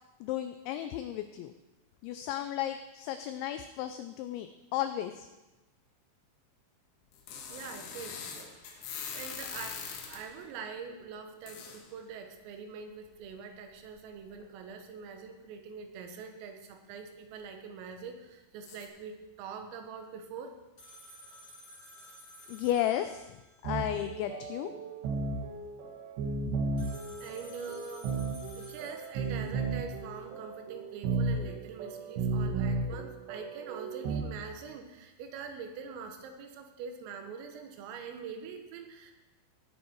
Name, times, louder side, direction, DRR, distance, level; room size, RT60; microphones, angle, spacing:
voice 1, 0.2-1.5 2.0-5.3 22.5-23.2 23.6-24.7, left 12 dB, 90° left, 9 dB, 2.6 m, -34 dB
sound 1, 7.1-10.4 11.5-11.9 13.1-13.2 13.8-13.9 14.3-14.5 18.7-18.9, left 6 dB, 70° left, 3.8 m, -42 dB
voice 2, 7.5-20.6 26.7-26.8 27.1-28.2 28.6-39.1, right 5 dB, 90° right, 5 dB, 4.0 m, -44 dB
sound 2, 20.8-23.7 26.8-29.6, equal, 35° left, 1.8 m, -53 dB
sound 3, 23.6-34.2, right 3 dB, 65° right, 3.1 m, -34 dB
17.0 x 9.5 x 4.5 m, 1.1 s
omnidirectional pair, 5.8 m